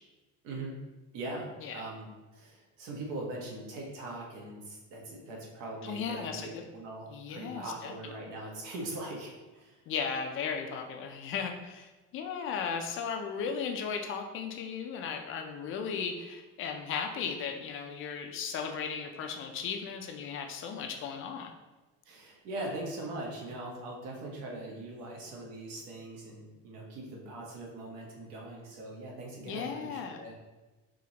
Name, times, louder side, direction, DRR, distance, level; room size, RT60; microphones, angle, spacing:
voice 1, 0.4-0.8 1.1-2.1 2.3-9.8 22.0-30.3, right 2 dB, 75° right, -2 dB, 1.2 m, -41 dB
voice 2, 5.8-6.6 7.1-7.9 9.9-21.5 29.5-30.2, left 6 dB, 45° left, 4 dB, 0.4 m, -36 dB
5.0 x 3.0 x 2.8 m, 1.2 s
cardioid pair, 170°, 30 cm